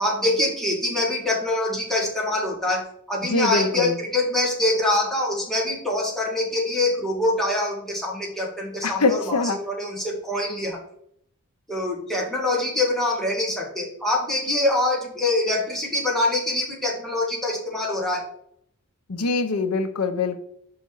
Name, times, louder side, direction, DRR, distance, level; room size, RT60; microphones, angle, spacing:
voice 1, 0.0-10.8 11.7-18.3, left 2 dB, ahead, -3 dB, 1.8 m, -24 dB
voice 2, 3.2-4.0 8.8-9.6 19.1-20.4, left 3 dB, 80° left, 9 dB, 0.8 m, -23 dB
5.7 x 5.3 x 4.6 m, 0.68 s
head